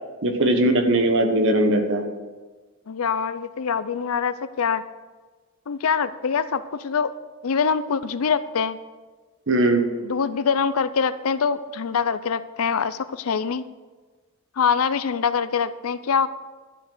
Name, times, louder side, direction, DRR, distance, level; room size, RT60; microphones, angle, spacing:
voice 1, 0.2-2.0 9.5-9.8, right 1 dB, 65° right, 6 dB, 1.3 m, -19 dB
voice 2, 2.9-4.8 5.7-7.1 7.4-8.8 10.0-13.6 14.6-16.3, left 6 dB, 75° left, 14 dB, 0.5 m, -24 dB
11.5 x 6.1 x 6.6 m, 1.4 s
head